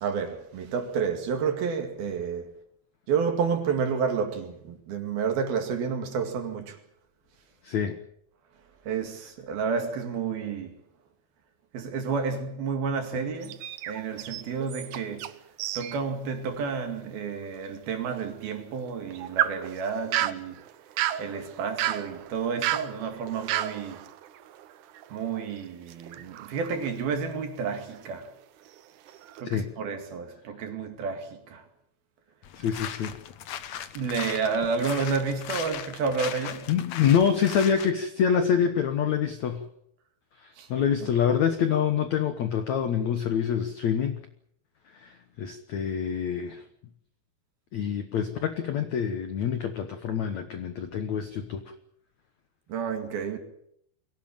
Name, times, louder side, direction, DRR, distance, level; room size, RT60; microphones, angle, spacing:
voice 1, 0.0-2.5 3.1-6.8 8.9-10.7 11.7-13.6 13.9-15.3 15.8-20.6 21.2-24.0 25.1-28.3 29.4-31.6 34.0-36.7 40.6-40.7 52.7-53.4, right 5 dB, 60° right, 3.9 m, -30 dB
voice 2, 7.6-8.0 29.5-29.7 32.6-33.2 36.4-39.6 40.4-44.2 44.9-46.6 47.7-51.6, left 8 dB, 70° left, 1.7 m, -26 dB
sound 1, 13.4-15.3 15.6-16.0 16.4-16.5 17.1-17.2 18.8-25.5 25.9-27.4 27.9-28.2 28.7-29.4, right 12 dB, 90° right, 1.7 m, -33 dB
sound 2, 32.4-37.9, left 10 dB, 85° left, 1.5 m, -38 dB
23.5 x 17.5 x 8.8 m
omnidirectional pair, 5.1 m